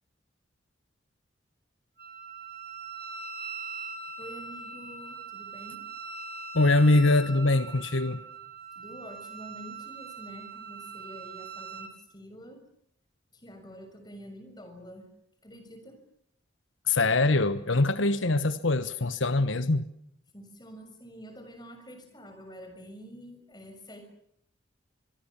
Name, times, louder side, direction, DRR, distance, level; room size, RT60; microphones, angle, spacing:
Wind instrument woodwind instrument, 2.0-11.9, right 4 dB, 55° right, 4.5 m, -41 dB
voice 1, 4.2-5.8 8.7-12.6 13.3-15.0 15.4-16.0 20.3-24.0, equal, 20° left, 6 dB, 6.5 m, -47 dB
voice 2, 6.5-8.2 16.9-19.9, left 2 dB, 85° left, 12 dB, 1.2 m, -23 dB
25.5 x 23.5 x 7.1 m, 0.72 s
head